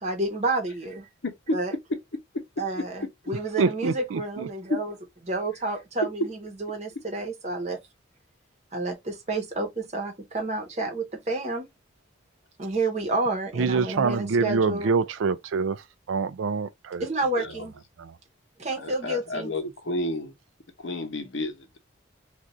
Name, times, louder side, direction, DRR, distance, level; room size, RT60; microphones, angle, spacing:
voice 1, 0.0-1.1 1.5-1.7 2.6-4.9 5.3-7.8 8.7-11.7 12.6-14.9 17.0-17.7 18.6-19.5, right 2 dB, 35° right, 0.9 m, -30 dB
voice 2, 1.2-1.6 1.9-2.0 2.3-2.4 2.8-2.9 4.7-4.8 17.4-17.7 18.8-20.3 20.8-21.8, left 1 dB, 65° left, 1.0 m, -30 dB
voice 3, 3.6-4.5 13.6-15.8 16.1-17.0, right 4 dB, 70° right, 0.4 m, -25 dB
2.5 x 2.4 x 4.1 m
head